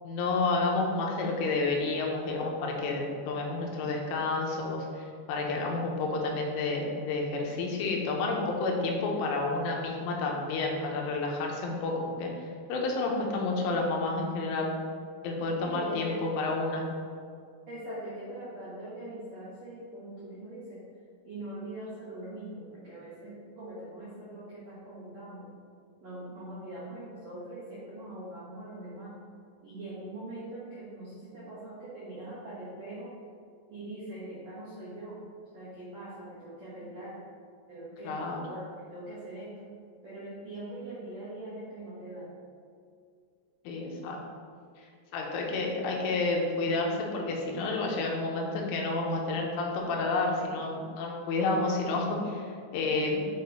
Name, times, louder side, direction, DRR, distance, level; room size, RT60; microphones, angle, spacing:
voice 1, 0.0-12.3 12.7-14.7 15.2-16.8 38.0-38.4 43.7-44.2 45.1-53.3, left 3 dB, 90° left, 0 dB, 3.3 m, -30 dB
voice 2, 15.6-16.2 17.7-20.8 21.2-25.5 26.0-29.2 29.6-33.1 33.7-35.2 35.5-37.2 37.7-39.6 40.0-42.3, right 1 dB, 85° right, -10 dB, 1.5 m, -42 dB
8.4 x 4.8 x 2.7 m, 2.2 s
omnidirectional pair, 5.5 m